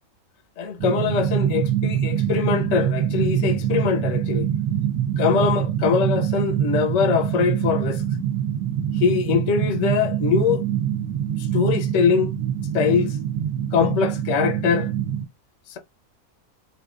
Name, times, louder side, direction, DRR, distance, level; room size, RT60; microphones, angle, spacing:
voice 1, 0.6-4.5 5.2-8.0 8.9-10.6 11.5-12.3 12.7-13.2 13.7-14.9 15.7-15.8, left 6 dB, 65° left, 1.0 m, -22 dB
sound 1, 0.8-15.2, right 10 dB, 70° right, 1.0 m, -24 dB
3.6 x 2.5 x 2.4 m
omnidirectional pair, 1.6 m